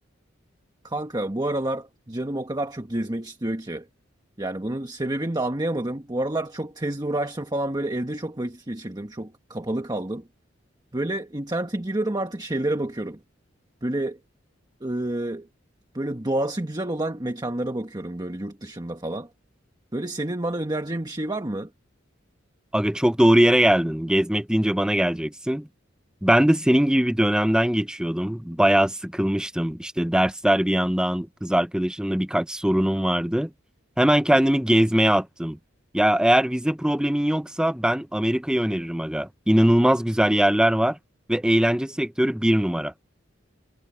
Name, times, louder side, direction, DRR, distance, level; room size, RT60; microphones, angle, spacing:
voice 1, 0.8-3.9 4.4-10.3 10.9-13.2 13.8-14.2 14.8-15.5 15.9-19.3 19.9-21.7, right 1 dB, 20° right, 1.5 m, -29 dB
voice 2, 22.7-25.7 26.2-33.5 34.0-35.6 35.9-41.0 41.3-42.9, equal, 5° right, 0.6 m, -21 dB
head